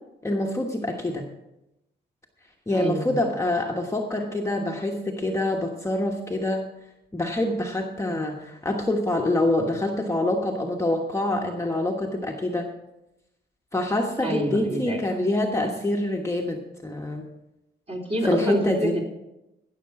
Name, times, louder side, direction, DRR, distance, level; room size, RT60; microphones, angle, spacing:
voice 1, 0.2-1.3 2.7-6.6 7.1-12.7 13.7-17.3 18.2-19.0, left 1 dB, 15° left, 0 dB, 1.3 m, -26 dB
voice 2, 2.7-3.2 8.1-8.4 14.2-15.0 17.9-19.0, right 1 dB, 30° right, -1 dB, 3.7 m, -28 dB
18.5 x 6.8 x 4.8 m, 0.91 s
cardioid pair, 105°, 19 cm